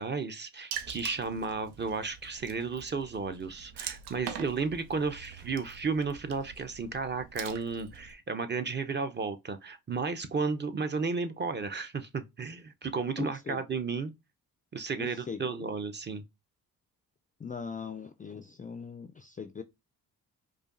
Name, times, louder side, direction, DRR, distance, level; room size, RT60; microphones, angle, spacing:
voice 1, 0.0-14.1 14.7-16.2, right 4 dB, 25° right, 0.5 m, -33 dB
Water / Splash splatter, 0.7-8.1, right 8 dB, 80° right, 0.6 m, -44 dB
voice 2, 13.2-13.6 15.0-15.7 17.4-19.6, left 6 dB, 20° left, 0.3 m, -40 dB
4.9 x 2.3 x 2.5 m
supercardioid pair, 55°, 40 cm